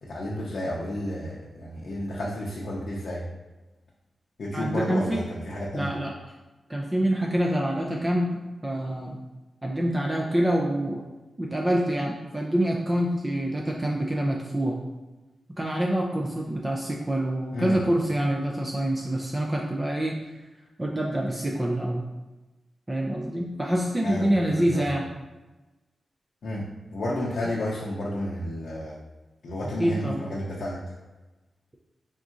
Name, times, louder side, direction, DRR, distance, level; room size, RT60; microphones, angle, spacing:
voice 1, 0.0-3.2 4.4-5.9 17.5-17.8 24.0-24.8 26.4-26.6 26.9-28.9 29.4-30.8, left 1 dB, 60° left, -5 dB, 0.6 m, -31 dB
voice 2, 4.5-5.2 5.7-6.2 6.7-9.2 9.6-11.0 11.4-14.8 15.5-20.2 20.8-22.1 22.9-25.1 29.8-30.2, right 1 dB, 15° right, -1 dB, 0.3 m, -26 dB
3.9 x 3.6 x 2.5 m, 1.1 s
wide cardioid pair, 135°, 0 cm